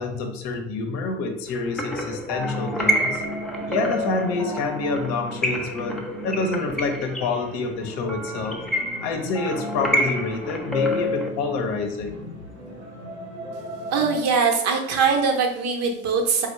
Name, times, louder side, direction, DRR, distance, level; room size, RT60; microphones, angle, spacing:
voice 1, 0.0-3.2 3.7-8.6 9.0-12.3, left 4 dB, 55° left, 4 dB, 0.8 m, -27 dB
sound 1, 1.5-11.3, equal, ahead, 0.5 m, -28 dB
sound 2, 1.9-14.2, right 1 dB, 80° right, 0.8 m, -36 dB
voice 2, 13.9-16.5, right 5 dB, 50° right, 3 dB, 0.9 m, -22 dB
4.3 x 2.1 x 4.2 m, 0.84 s
figure-of-eight pair, 55°, 33 cm